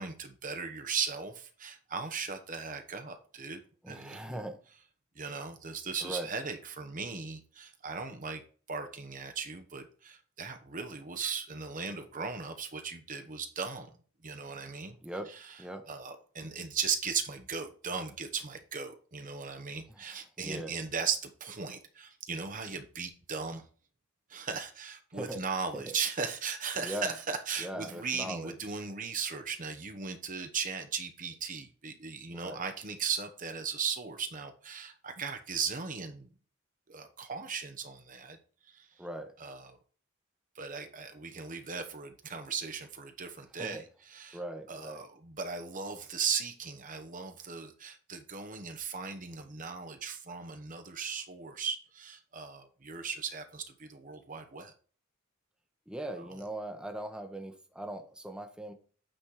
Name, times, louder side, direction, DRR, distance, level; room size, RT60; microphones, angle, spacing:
voice 1, 0.0-3.6 3.9-4.4 5.2-8.4 8.7-13.9 14.2-15.0 15.3-15.6 15.9-23.6 24.3-36.3 36.9-38.4 38.7-38.9 39.4-39.8 40.6-44.4 44.7-54.7 56.2-56.3, right 5 dB, 40° right, 7 dB, 1.1 m, -37 dB
voice 2, 3.8-4.6 6.0-6.3 15.0-15.3 15.6-15.8 20.4-20.7 25.1-25.4 25.7-25.9 26.7-27.1 27.6-28.6 32.3-32.6 39.0-39.3 43.6-43.8 44.3-45.0 55.9-58.7, right 1 dB, 5° right, 4 dB, 1.1 m, -40 dB
8.8 x 4.3 x 4.8 m, 0.41 s
head